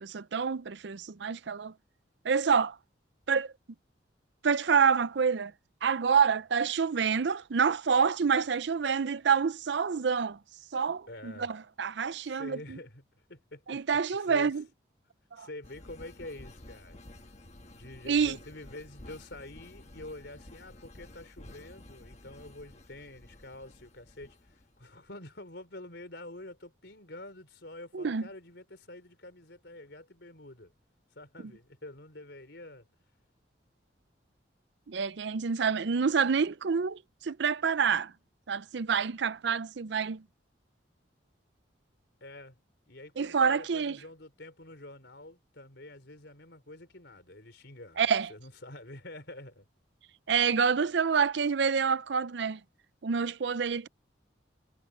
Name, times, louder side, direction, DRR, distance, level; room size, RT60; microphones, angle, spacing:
voice 1, 0.0-1.7 2.2-2.8 3.3-3.5 4.4-5.5 5.8-10.4 10.7-12.8 13.7-14.6 15.3-15.5 18.1-18.4 27.9-28.3 34.9-38.1 38.5-40.2 43.2-44.0 48.0-48.3 50.3-52.6 53.0-53.9, right 6 dB, 70° right, 0.5 m, -27 dB
voice 2, 11.1-11.5 12.2-13.8 14.2-14.5 15.4-17.0 17.7-30.7 31.2-32.9 42.2-42.6 42.9-49.7, left 1 dB, 65° left, 4.3 m, -47 dB
sound 1, 15.6-24.9, left 1 dB, 35° left, 1.3 m, -52 dB
head